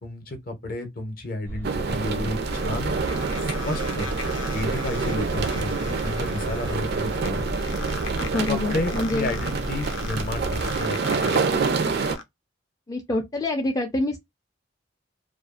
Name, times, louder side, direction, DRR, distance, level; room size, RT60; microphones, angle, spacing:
voice 1, 0.0-2.9 3.4-4.1 4.5-7.5 8.5-11.0 11.2-11.4, left 2 dB, 50° left, 0.7 m, -31 dB
sound 1, 1.4-10.8, equal, 85° right, 0.8 m, -34 dB
sound 2, 1.6-12.2, right 4 dB, 55° right, 0.4 m, -27 dB
sound 3, 1.8-12.2, left 4 dB, 85° left, 0.5 m, -39 dB
voice 2, 8.2-9.3 12.9-14.2, left 2 dB, 20° left, 0.4 m, -26 dB
2.4 x 2.3 x 2.4 m
head